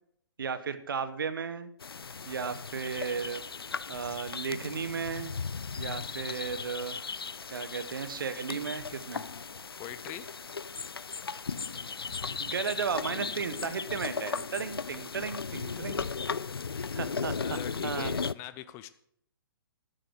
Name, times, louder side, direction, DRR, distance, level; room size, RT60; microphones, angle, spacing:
voice 1, 0.4-1.7 2.2-3.4 3.9-5.3 5.8-7.0 7.5-9.2 12.4-16.0 16.9-18.1, right 6 dB, 65° right, 12 dB, 1.2 m, -34 dB
sound 1, 1.8-18.3, left 5 dB, 75° left, 0.5 m, -37 dB
voice 2, 9.8-10.3 15.9-16.1 16.7-17.0 17.3-18.9, left 12 dB, 20° left, 13 dB, 0.6 m, -43 dB
11.0 x 10.5 x 4.7 m, 0.69 s
figure-of-eight pair, 125°, 12 cm